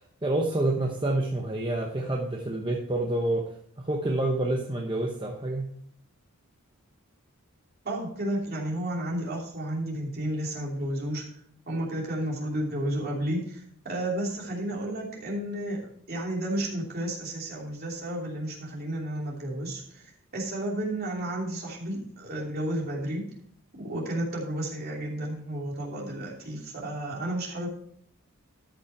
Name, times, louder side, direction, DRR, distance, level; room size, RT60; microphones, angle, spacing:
voice 1, 0.2-5.7, right 1 dB, 20° right, 1 dB, 0.8 m, -28 dB
voice 2, 7.8-11.2 11.7-23.3 23.8-27.7, right 1 dB, 45° right, -3 dB, 2.9 m, -32 dB
13.0 x 5.6 x 4.5 m, 0.65 s
head